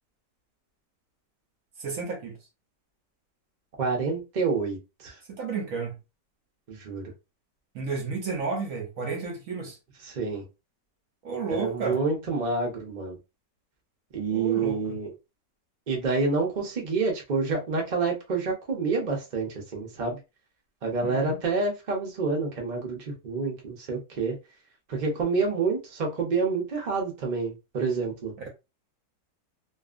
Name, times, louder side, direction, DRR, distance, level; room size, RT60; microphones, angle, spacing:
voice 1, 1.8-2.4 5.3-6.0 7.7-9.8 11.2-12.0 14.3-14.8 21.0-21.4, right 4 dB, 65° right, 0.9 m, -32 dB
voice 2, 3.8-5.2 6.7-7.0 10.0-10.4 11.5-13.2 14.1-15.1 15.9-20.2 20.8-24.4 24.9-28.3, right 4 dB, 50° right, 0.5 m, -28 dB
2.6 x 2.4 x 2.4 m
omnidirectional pair, 1.9 m